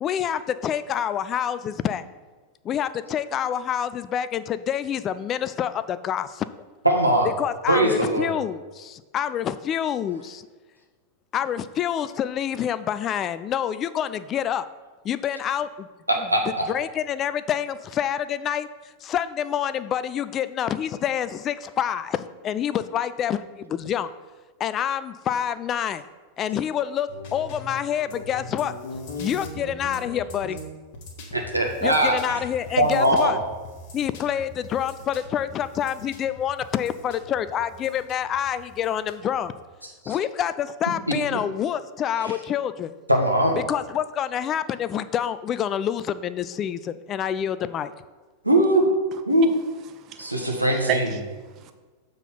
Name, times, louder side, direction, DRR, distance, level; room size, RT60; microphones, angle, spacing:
voice 1, 0.0-2.0 2.6-6.5 7.4-10.5 11.3-14.7 15.0-15.9 16.7-18.7 19.0-24.1 24.6-26.0 26.4-28.7 29.2-30.6 31.8-33.4 33.9-39.5 40.1-42.9 43.7-47.9, left 9 dB, 30° left, 0.3 m, -27 dB
voice 2, 6.8-7.3 7.7-8.3 16.1-16.4 31.3-32.4 32.8-33.4 40.0-40.2 41.3-41.4 42.2-42.4 43.1-43.6 48.4-48.9 49.3-49.5 50.2-51.0, right 1 dB, 85° right, 1.2 m, -21 dB
sound 1, 27.1-39.6, left 2 dB, 50° left, 1.4 m, -41 dB
voice 3, 49.9-51.7, right 7 dB, 35° right, 0.5 m, -33 dB
7.2 x 3.9 x 5.7 m
figure-of-eight pair, 90°, 0 cm